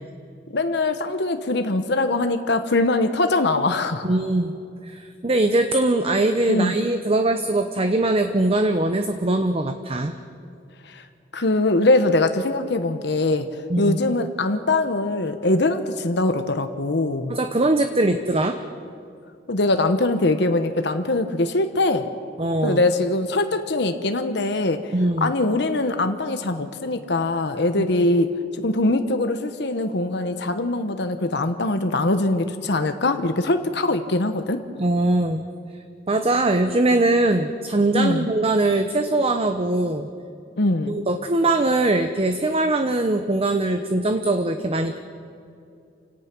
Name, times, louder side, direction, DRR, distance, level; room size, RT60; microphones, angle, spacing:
voice 1, 0.5-4.1 6.5-6.8 10.9-11.0 11.3-17.4 19.5-22.1 22.6-24.9 25.2-34.6 37.9-38.3 40.6-41.0, left 2 dB, 65° left, 8 dB, 1.1 m, -22 dB
voice 2, 4.0-4.5 4.8-10.1 13.7-14.0 17.3-18.6 22.4-22.8 24.9-25.3 34.8-35.5 36.1-40.1 40.9-45.0, right 2 dB, 35° right, 8 dB, 0.8 m, -21 dB
28.5 x 17.5 x 6.1 m, 2.5 s
head